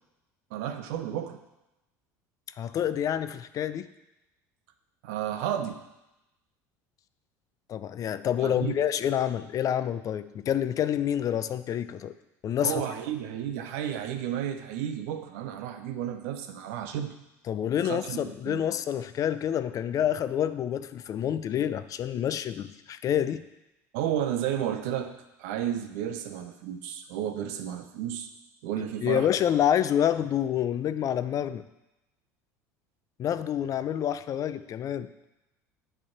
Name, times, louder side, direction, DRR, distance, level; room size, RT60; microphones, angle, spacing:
voice 1, 0.5-1.4 5.0-5.8 8.4-8.8 12.6-17.1 17.8-18.7 23.9-25.1 25.4-28.3 28.6-29.3, right 10 dB, 75° right, 8 dB, 0.7 m, -32 dB
voice 2, 2.6-3.9 7.7-12.1 12.4-12.8 17.5-23.4 29.0-31.6 33.2-35.1, left 10 dB, 45° left, 13 dB, 0.4 m, -28 dB
8.4 x 3.4 x 5.9 m, 0.94 s
hypercardioid pair, 80°, 8 cm